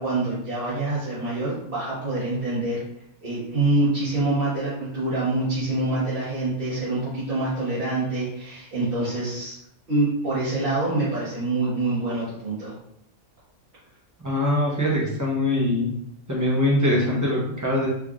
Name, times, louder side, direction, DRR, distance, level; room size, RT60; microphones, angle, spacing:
voice 1, 0.0-2.8 3.2-9.5 9.9-12.7, right 2 dB, 45° right, -12 dB, 1.3 m, -25 dB
voice 2, 14.2-15.9 16.3-17.9, left 1 dB, 15° right, -4 dB, 0.7 m, -22 dB
3.6 x 3.1 x 2.4 m, 0.73 s
omnidirectional pair, 1.5 m